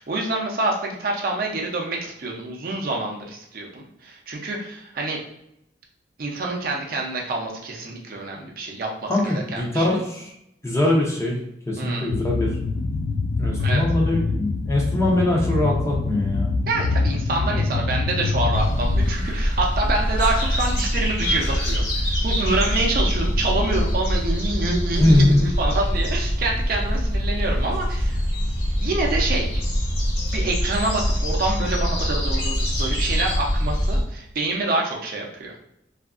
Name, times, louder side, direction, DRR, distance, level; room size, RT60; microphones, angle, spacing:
voice 1, 0.0-5.2 6.2-9.9 11.8-12.1 13.6-13.8 16.7-28.2 28.8-29.5 30.3-35.5, right 2 dB, 50° right, -1 dB, 0.5 m, -27 dB
voice 2, 9.1-10.3 10.6-11.4 11.7-12.5 13.4-16.5 25.0-25.4, left 1 dB, 15° left, -2 dB, 0.5 m, -21 dB
sound 1, 12.1-19.1, left 3 dB, 75° left, 0.3 m, -24 dB
sound 2, 18.5-34.0, equal, 60° left, 1.0 m, -24 dB
2.7 x 2.4 x 2.4 m, 0.79 s
head